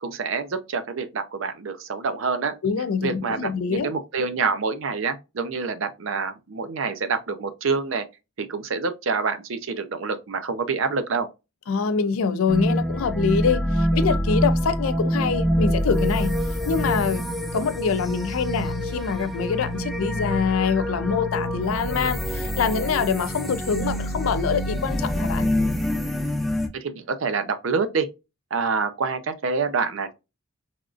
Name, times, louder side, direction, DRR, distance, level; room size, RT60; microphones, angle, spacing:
voice 1, 0.0-2.5 3.0-8.0 8.4-11.3 26.7-28.1 28.5-30.1, right 4 dB, 70° right, 0.6 m, -27 dB
voice 2, 2.6-3.9 11.7-16.4 16.7-17.2 17.5-25.5, left 6 dB, 85° left, 0.4 m, -25 dB
sound 1, 12.5-26.7, equal, ahead, 0.4 m, -26 dB
3.4 x 2.4 x 2.4 m
head